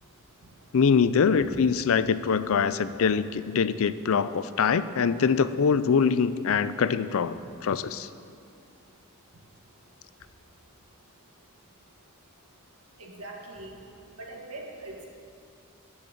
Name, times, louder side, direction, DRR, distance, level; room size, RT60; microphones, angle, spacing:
voice 1, 0.7-7.4 7.6-8.1, left 6 dB, 65° left, 14 dB, 0.4 m, -23 dB
voice 2, 13.0-13.7 14.2-15.0, right 2 dB, 90° right, 0 dB, 2.0 m, -41 dB
12.0 x 6.4 x 8.4 m, 2.4 s
head